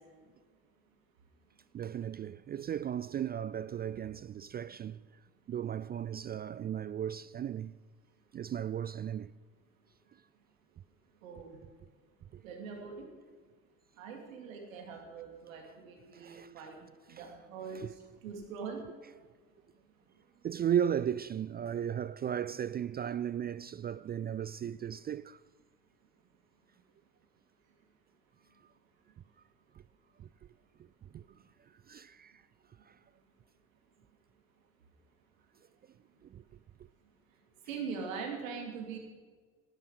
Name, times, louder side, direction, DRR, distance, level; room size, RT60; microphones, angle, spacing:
voice 1, 1.7-5.0 5.5-7.7 8.3-9.3 12.3-12.4 16.1-16.5 17.1-17.3 17.7-17.9 20.4-25.4 31.1-31.2 31.9-32.4 32.9-33.0 36.2-36.4, right 9 dB, 25° right, 0.4 m, -35 dB
voice 2, 11.2-11.6 12.4-13.1 14.0-16.8 17.1-17.8 18.2-18.8 37.7-39.0, right 5 dB, 80° right, 2.8 m, -42 dB
18.0 x 12.5 x 4.9 m
hypercardioid pair, 55°, 40 cm